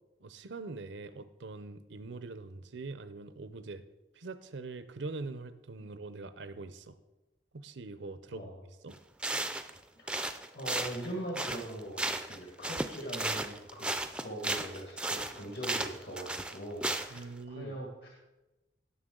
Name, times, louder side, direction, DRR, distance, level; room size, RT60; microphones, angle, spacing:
voice 1, 0.2-3.8 4.1-7.0 7.5-8.5 8.8-9.0 17.1-17.7, right 3 dB, 85° right, 12 dB, 0.7 m, -43 dB
sound 1, 8.9-9.0 9.2-9.8 10.1-12.4 12.6-17.2, right 2 dB, 5° right, 0.4 m, -34 dB
voice 2, 10.5-18.1, right 1 dB, 65° left, -1 dB, 1.8 m, -41 dB
17.5 x 6.7 x 3.8 m, 1.0 s
head